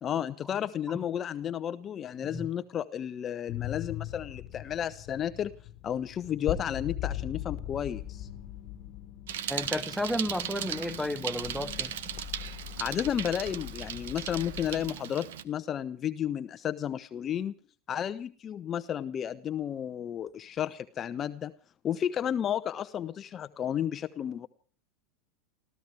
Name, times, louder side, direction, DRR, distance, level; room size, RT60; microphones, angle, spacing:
voice 1, 0.0-5.5 5.8-8.3 12.8-17.5 17.9-21.5 21.8-24.5, left 9 dB, 35° left, 0.8 m, -32 dB
sound 1, 3.5-14.9, left 13 dB, 55° left, 1.5 m, -40 dB
Bicycle, 9.3-15.4, right 10 dB, 70° right, 1.0 m, -37 dB
voice 2, 9.5-11.9, left 1 dB, ahead, 1.2 m, -32 dB
30.0 x 14.0 x 3.4 m
hypercardioid pair, 85°, 0 cm